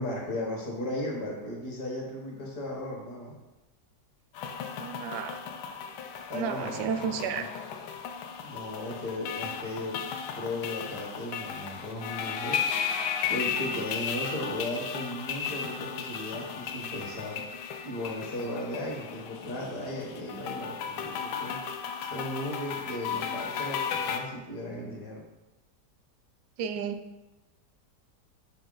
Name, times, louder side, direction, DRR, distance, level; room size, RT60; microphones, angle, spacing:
voice 1, 0.0-3.4 6.3-7.4 8.4-10.0 10.3-12.6 13.3-17.4 17.8-21.6 22.1-25.2, left 1 dB, 65° left, -1 dB, 1.9 m, -36 dB
sound 1, 4.3-24.2, left 7 dB, 80° left, 1.2 m, -35 dB
voice 2, 4.8-5.4 6.3-7.5 26.6-27.0, right 7 dB, 80° right, 8 dB, 1.2 m, -32 dB
5.5 x 5.2 x 3.8 m, 1.1 s
omnidirectional pair, 1.8 m